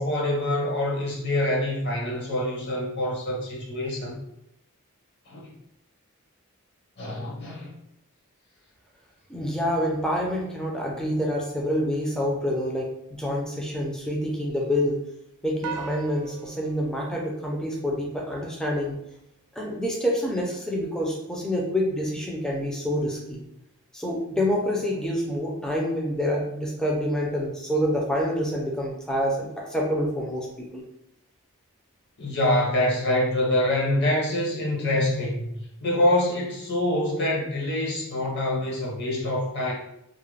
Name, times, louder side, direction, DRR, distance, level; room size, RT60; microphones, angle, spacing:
voice 1, 0.0-4.2 5.3-5.5 7.0-7.7 32.2-35.5 35.8-39.7, left 1 dB, 50° left, -3 dB, 0.7 m, -25 dB
voice 2, 9.3-15.0 15.4-19.0 19.6-23.4 23.9-30.8, equal, 5° left, -2 dB, 0.4 m, -27 dB
sound 1, 15.6-18.2, right 6 dB, 85° right, 0.3 m, -39 dB
2.4 x 2.0 x 3.1 m, 0.81 s
head